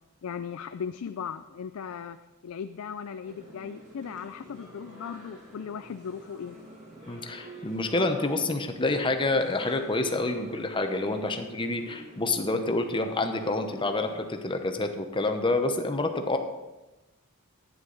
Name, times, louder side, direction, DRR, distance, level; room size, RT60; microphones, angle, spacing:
voice 1, 0.2-2.2 2.4-6.6, left 7 dB, 70° left, 10 dB, 0.4 m, -37 dB
sound 1, 3.2-14.3, right 1 dB, 35° right, 3.4 m, -47 dB
voice 2, 7.1-16.4, left 2 dB, 25° left, 6 dB, 0.9 m, -28 dB
11.5 x 9.5 x 4.0 m, 1.1 s
head